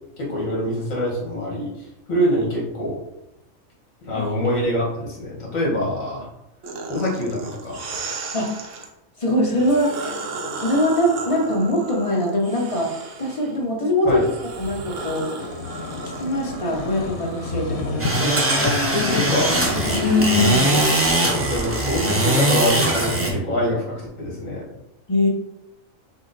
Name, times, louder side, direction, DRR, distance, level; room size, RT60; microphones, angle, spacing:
voice 1, 0.2-3.0 4.0-6.3 6.9-8.0 14.0-14.2 18.6-19.5 21.1-24.6, left 1 dB, 70° left, -4 dB, 1.9 m, -25 dB
sound 1, 6.6-8.9 9.5-13.6 14.0-23.2, right 3 dB, 65° right, 1.0 m, -35 dB
voice 2, 9.2-10.1 10.6-12.9 13.2-14.3 14.6-15.3 16.0-18.5 19.9-20.9 25.1-25.3, left 1 dB, 30° left, -1 dB, 0.7 m, -22 dB
sound 2, 15.1-18.2 18.6-20.5, left 5 dB, 90° left, 1.2 m, -30 dB
sound 3, 18.0-23.3, right 1 dB, 20° right, 0.4 m, -21 dB
6.2 x 2.1 x 3.9 m, 0.86 s
omnidirectional pair, 1.4 m